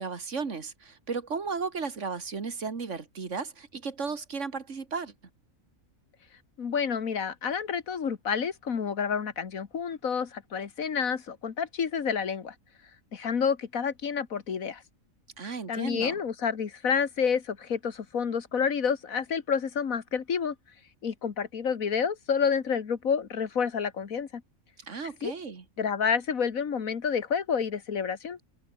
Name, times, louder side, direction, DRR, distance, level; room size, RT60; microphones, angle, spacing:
voice 1, 0.0-5.1 15.4-16.2 24.8-25.6, right 5 dB, 60° right, 2.2 m, -35 dB
voice 2, 6.6-12.5 13.1-14.8 15.7-20.6 21.0-24.4 25.2-25.3 25.8-28.4, left 6 dB, 75° left, 1.9 m, -29 dB
omnidirectional pair, 1.4 m